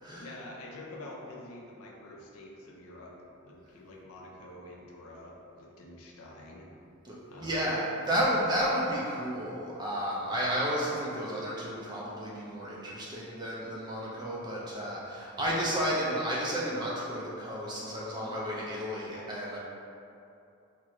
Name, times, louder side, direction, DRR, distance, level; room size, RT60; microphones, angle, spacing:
voice 1, 0.1-3.1 3.4-6.7 7.3-7.7, left 1 dB, 80° left, -2 dB, 0.5 m, -47 dB
voice 2, 7.0-19.6, equal, 20° right, -5 dB, 0.3 m, -32 dB
2.9 x 2.4 x 3.0 m, 2.7 s
head